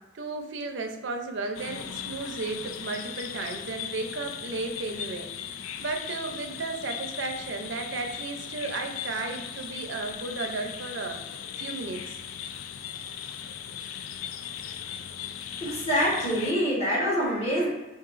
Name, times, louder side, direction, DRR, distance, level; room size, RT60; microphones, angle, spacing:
voice 1, 0.1-11.2 11.6-12.2, right 3 dB, 60° right, 4 dB, 0.5 m, -34 dB
sound 1, 1.5-16.5, left 9 dB, 80° left, 0.3 m, -38 dB
voice 2, 15.6-17.7, equal, 30° left, -5 dB, 1.1 m, -25 dB
4.7 x 2.6 x 2.5 m, 1.2 s
head